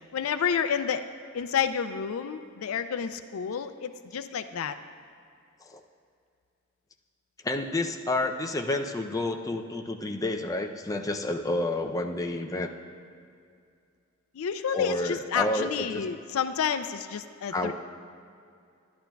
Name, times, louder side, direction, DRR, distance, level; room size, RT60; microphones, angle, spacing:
voice 1, 0.1-1.0 1.3-4.8 14.3-17.7, left 7 dB, 75° left, 11 dB, 0.4 m, -30 dB
voice 2, 7.4-12.7 14.7-16.0 17.5-17.7, left 2 dB, 15° left, 3 dB, 0.4 m, -30 dB
11.5 x 11.0 x 2.3 m, 2.4 s
head